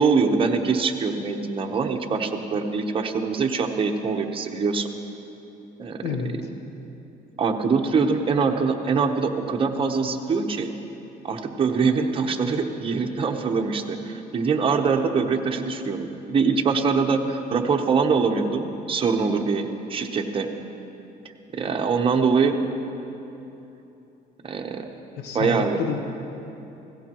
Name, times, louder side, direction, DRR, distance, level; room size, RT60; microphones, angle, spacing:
voice 1, 0.0-4.9 5.8-6.5 7.4-10.7 11.2-20.5 21.5-22.6 24.4-24.8 25.3-25.8, right 5 dB, 30° right, 2 dB, 1.0 m, -23 dB
voice 2, 6.0-6.4 17.5-17.8 25.2-26.0, left 6 dB, 75° left, 5 dB, 1.0 m, -30 dB
17.0 x 16.5 x 3.0 m, 2.9 s
cardioid pair, 110°, 17 cm